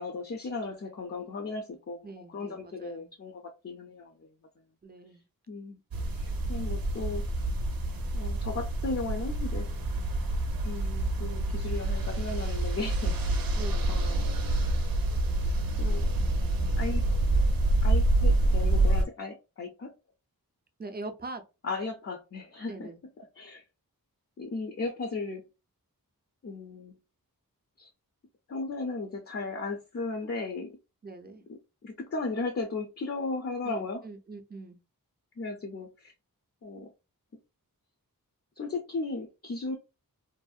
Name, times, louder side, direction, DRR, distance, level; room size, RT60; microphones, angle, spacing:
voice 1, 0.0-4.3 5.5-5.8 6.5-7.2 8.1-9.7 10.6-13.4 13.9-14.3 15.8-16.0 16.8-17.1 17.8-19.9 21.6-22.9 23.4-23.6 24.4-25.4 26.4-27.0 27.8-27.9 28.5-30.8 31.5-34.0 35.4-36.1 36.6-36.9 38.6-39.8, left 3 dB, 40° left, 0.5 m, -36 dB
voice 2, 2.0-3.1 4.8-5.2 13.6-14.0 20.8-21.4 22.7-23.0 31.0-31.4 33.6-34.8, right 2 dB, 25° right, 0.5 m, -42 dB
sound 1, 5.9-19.0, right 1 dB, 75° right, 0.6 m, -27 dB
2.6 x 2.0 x 2.3 m
wide cardioid pair, 75°, 36 cm